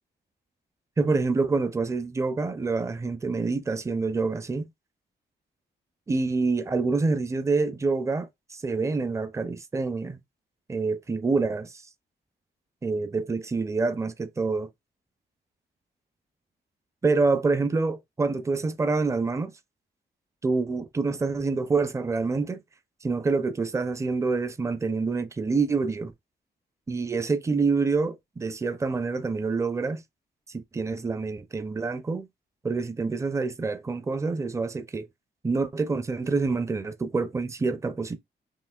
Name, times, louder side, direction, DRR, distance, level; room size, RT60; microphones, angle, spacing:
voice 1, 1.0-4.7 6.1-10.2 10.7-11.8 12.8-14.7 17.0-19.5 20.4-22.6 23.0-26.1 26.9-30.0 30.5-32.3 32.6-35.1 35.4-38.2, right 4 dB, 15° right, 0.4 m, -27 dB
5.6 x 2.7 x 2.3 m
wide cardioid pair, 130°, 19 cm